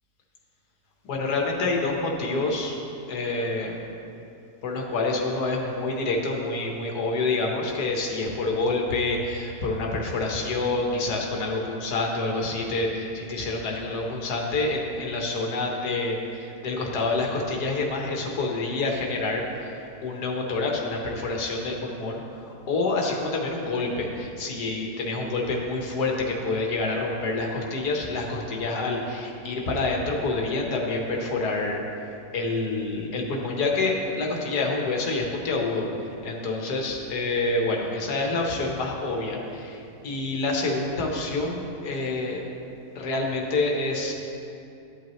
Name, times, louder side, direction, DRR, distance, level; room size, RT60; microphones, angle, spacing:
voice 1, 1.0-2.8 3.1-3.8 4.6-31.8 32.3-35.9 36.2-39.8 40.0-42.4 42.9-44.1, left 3 dB, 85° left, 0 dB, 1.7 m, -27 dB
12.0 x 8.1 x 3.1 m, 2.7 s
omnidirectional pair, 1.7 m